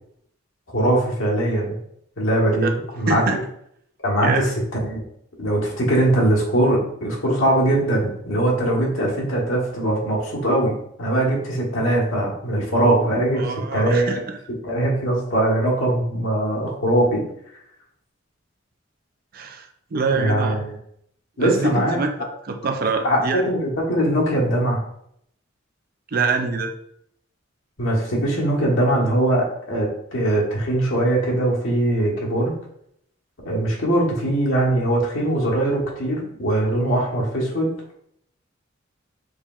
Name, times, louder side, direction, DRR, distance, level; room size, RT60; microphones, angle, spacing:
voice 1, 0.7-1.8 2.2-3.2 4.0-4.5 4.7-5.0 5.4-13.4 13.7-14.1 14.6-17.2 20.1-20.8 21.4-22.0 23.0-24.8 27.8-32.6 33.4-37.7, right 1 dB, 80° left, -3 dB, 1.2 m, -21 dB
voice 2, 3.1-3.4 4.2-4.5 13.4-14.4 19.3-19.7 19.9-20.6 21.4-22.1 22.4-23.4 26.1-26.7, right 4 dB, 45° right, 5 dB, 0.4 m, -24 dB
4.7 x 2.9 x 2.4 m, 0.71 s
head